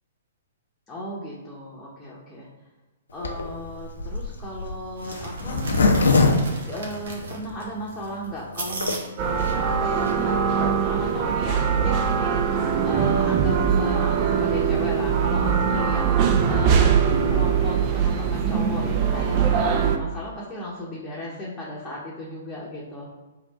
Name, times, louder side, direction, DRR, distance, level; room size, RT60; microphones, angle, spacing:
voice 1, 0.9-2.5 3.1-5.7 6.5-16.1 16.5-23.1, left 1 dB, 15° left, -7 dB, 0.9 m, -35 dB
Zipper (clothing), 3.2-7.5 8.0-8.1 8.3-8.4 8.6-8.9, left 3 dB, 75° left, 0.6 m, -22 dB
sound 1, 5.0-10.2, right 2 dB, 65° right, 0.9 m, -37 dB
sound 2, 9.2-20.0, right 7 dB, 35° right, 0.4 m, -22 dB
3.4 x 2.5 x 4.0 m, 1.1 s
figure-of-eight pair, 120°, 0 cm